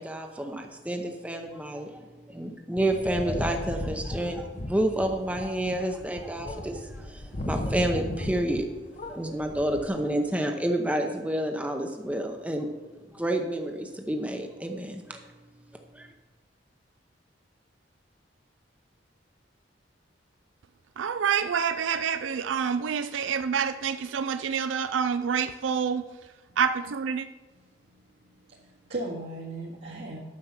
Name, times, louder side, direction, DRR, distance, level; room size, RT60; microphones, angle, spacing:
voice 1, 0.0-8.7 9.1-12.7 13.1-15.2 15.9-16.1, right 1 dB, 5° right, 0.7 m, -29 dB
sound 1, 2.8-8.7 9.0-9.9, left 1 dB, 40° left, 0.7 m, -36 dB
voice 2, 21.0-26.1 26.6-27.3, right 7 dB, 85° right, 0.4 m, -27 dB
voice 3, 27.5-30.2, right 2 dB, 70° right, 2.0 m, -38 dB
9.5 x 6.8 x 5.8 m
head